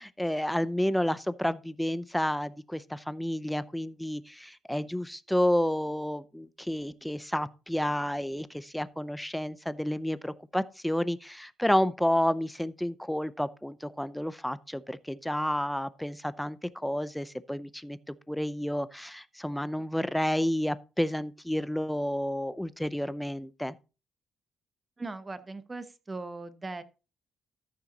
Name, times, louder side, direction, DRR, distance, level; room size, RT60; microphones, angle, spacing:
voice 1, 0.0-23.7, equal, 5° left, 0.6 m, -30 dB
voice 2, 25.0-26.8, right 3 dB, 25° right, 1.0 m, -39 dB
14.0 x 5.6 x 3.9 m
cardioid pair, 90°, 0 cm